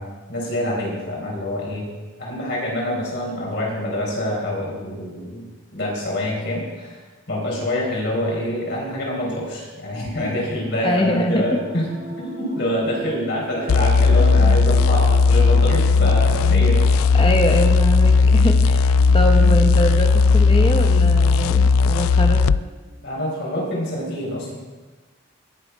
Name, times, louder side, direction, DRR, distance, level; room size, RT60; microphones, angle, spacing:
voice 1, 0.0-1.9 2.2-7.0 7.3-11.9 12.2-16.9 23.0-24.5, left 1 dB, 55° left, -3 dB, 4.3 m, -26 dB
sound 1, 10.7-24.2, right 1 dB, 80° right, 4.6 m, -40 dB
voice 2, 10.8-11.4 17.1-22.4, left 1 dB, 25° left, 4 dB, 1.0 m, -23 dB
sound 2, 13.7-22.6, left 4 dB, 90° left, 0.3 m, -16 dB
18.5 x 7.1 x 4.6 m, 1.3 s
head